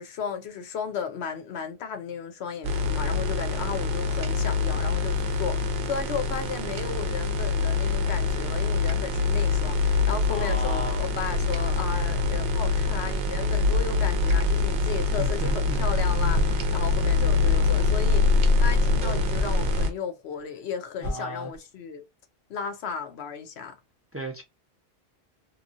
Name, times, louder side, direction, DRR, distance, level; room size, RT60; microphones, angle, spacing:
voice 1, 0.0-18.3 18.6-22.0 22.5-23.8, left 6 dB, 85° left, 0.9 m, -34 dB
sound 1, 2.6-19.9, left 3 dB, 60° right, 0.7 m, -24 dB
voice 2, 10.3-11.0 15.2-15.9 21.0-21.5 24.1-24.4, right 1 dB, 20° right, 0.4 m, -35 dB
sound 2, 14.9-15.1 15.5-15.6 16.3-16.6 17.1-17.2 17.8-18.1 18.7-18.8 19.3-19.6 19.9-20.0 20.4-20.5 21.0-21.6, left 1 dB, 55° left, 0.8 m, -33 dB
3.0 x 2.3 x 2.5 m
omnidirectional pair, 1.0 m